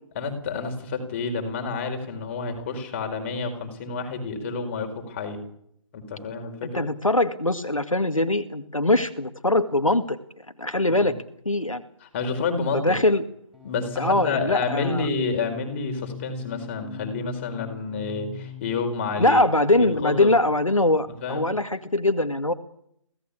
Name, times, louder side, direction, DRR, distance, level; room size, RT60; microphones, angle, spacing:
voice 1, 0.1-5.4 5.9-6.9 10.9-11.1 12.0-13.0 13.6-19.4 19.8-20.3 21.2-21.5, left 4 dB, 25° left, 5 dB, 4.7 m, -29 dB
voice 2, 6.7-10.2 10.6-11.2 11.5-11.8 12.8-13.2 14.0-15.1 19.2-22.5, left 1 dB, 85° left, 8 dB, 2.1 m, -22 dB
sound 1, 13.5-19.2, left 8 dB, ahead, 5.0 m, -41 dB
25.0 x 17.5 x 8.6 m, 0.73 s
figure-of-eight pair, 150°, 17 cm